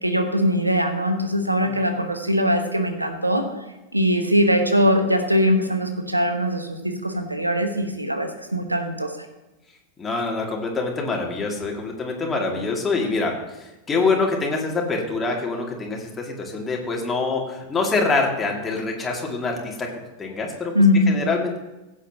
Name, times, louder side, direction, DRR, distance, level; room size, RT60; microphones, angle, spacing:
voice 1, 0.0-3.5 3.9-9.1 20.7-21.2, equal, 85° right, 6 dB, 1.3 m, -21 dB
voice 2, 10.0-13.3 13.6-19.9 20.2-20.7 21.1-21.6, left 3 dB, 15° left, -1 dB, 2.3 m, -25 dB
16.5 x 8.4 x 2.9 m, 1.0 s
figure-of-eight pair, 90°, 0 cm